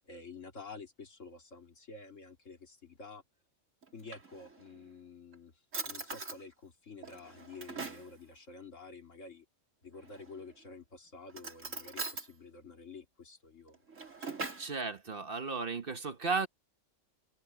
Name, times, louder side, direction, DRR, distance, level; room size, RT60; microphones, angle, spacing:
voice 1, 0.0-3.2 3.9-9.4 9.8-13.8 14.1-14.4, left 4 dB, 75° left, 3.0 m, -50 dB
Drawer open or close, 3.8-4.8 5.3-5.4 5.7-6.4 7.0-8.1 10.0-10.5 11.3-12.3 13.7-14.7, right 3 dB, 80° right, 3.8 m, -42 dB
voice 2, 14.6-16.5, right 4 dB, 45° right, 1.3 m, -34 dB
open air
omnidirectional pair, 1.3 m